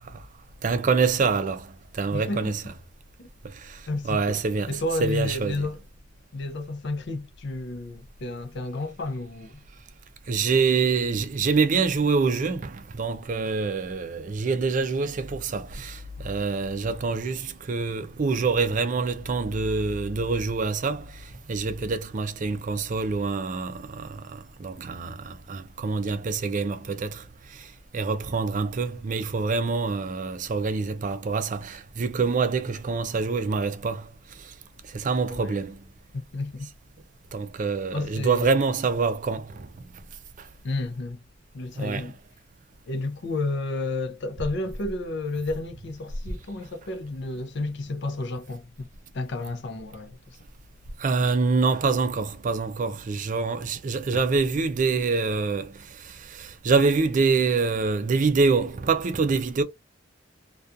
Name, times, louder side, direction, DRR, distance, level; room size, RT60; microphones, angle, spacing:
voice 1, 0.6-1.7 1.9-2.6 4.0-5.6 10.3-21.1 21.5-27.2 27.9-34.0 34.9-35.8 37.3-39.7 41.8-42.1 51.0-55.7 56.3-59.6, right 4 dB, 40° right, 0.4 m, -25 dB
voice 2, 2.1-2.6 3.2-3.3 3.9-4.4 4.7-5.8 6.3-9.6 35.3-35.6 36.1-36.7 37.9-38.6 40.6-41.2 41.5-42.1 42.9-48.9 49.1-50.4 59.6-59.7, left 2 dB, 65° left, 0.5 m, -31 dB
2.3 x 2.3 x 2.6 m
head